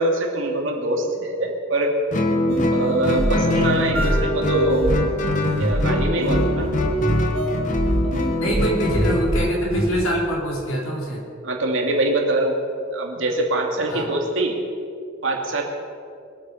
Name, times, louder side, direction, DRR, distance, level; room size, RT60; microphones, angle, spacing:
voice 1, 0.0-2.0 2.7-5.0 5.6-6.7 11.4-12.6 12.9-14.5 15.2-15.6, right 2 dB, 65° right, 1 dB, 2.5 m, -23 dB
Guitar, 2.1-9.6, left 1 dB, 40° left, 1.4 m, -23 dB
sound 1, 2.5-10.0, equal, 85° right, 4.0 m, -25 dB
voice 2, 8.3-11.2 13.9-14.1, right 1 dB, 90° left, -2 dB, 4.2 m, -24 dB
23.0 x 8.5 x 5.7 m, 2.4 s
head